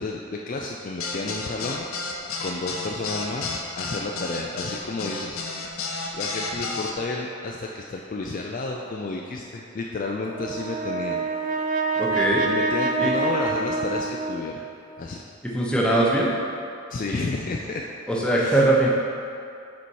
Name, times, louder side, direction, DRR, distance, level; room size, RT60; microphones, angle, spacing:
voice 1, 0.0-1.9 2.4-5.8 6.1-11.3 12.5-14.6 15.0-15.2 16.9-17.9 18.4-18.6, left 3 dB, 35° left, 0 dB, 0.3 m, -31 dB
sound 1, 1.0-6.9, left 3 dB, 65° left, 0.7 m, -31 dB
Brass instrument, 10.3-14.7, right 3 dB, 35° right, 0.4 m, -26 dB
voice 2, 12.0-12.4 13.0-13.1 15.4-16.3 18.1-18.9, right 1 dB, 5° left, -5 dB, 0.7 m, -21 dB
6.8 x 4.2 x 4.6 m, 2.6 s
head